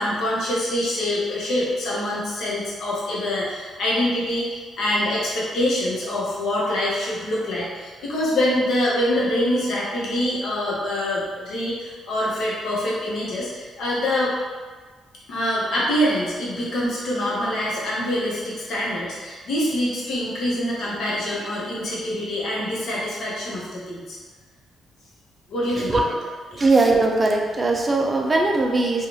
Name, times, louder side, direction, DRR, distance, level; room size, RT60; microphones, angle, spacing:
voice 1, 0.0-14.3 15.3-24.2 25.5-26.1 26.5-26.7, left 1 dB, 65° left, -6 dB, 0.8 m, -25 dB
voice 2, 26.5-29.1, right 3 dB, 25° right, 1 dB, 0.4 m, -20 dB
2.6 x 2.3 x 3.0 m, 1.4 s
cardioid pair, 135°, 0 cm